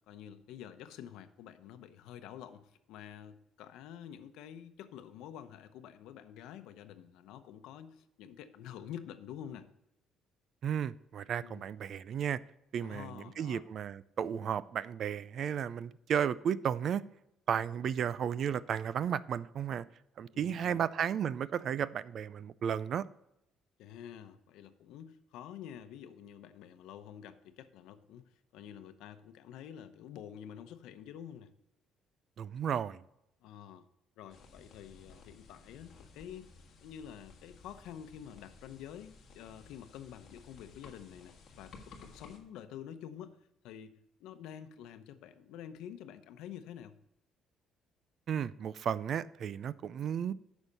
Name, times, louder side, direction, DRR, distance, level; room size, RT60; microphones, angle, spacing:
voice 1, 0.1-9.7 11.4-11.6 12.8-13.6 20.3-20.9 23.8-31.5 33.4-33.9 34.2-36.5 36.8-41.7 42.0-43.4 43.6-47.0, left 9 dB, 85° left, 10 dB, 0.8 m, -48 dB
voice 2, 10.6-12.4 12.7-17.0 17.5-19.9 20.2-23.1 32.4-33.0 48.3-50.3, right 8 dB, 40° right, 18 dB, 0.3 m, -34 dB
sound 1, 34.3-42.4, left 4 dB, 40° left, 1.6 m, -56 dB
9.9 x 6.3 x 5.3 m, 0.83 s
cardioid pair, 175°, 0 cm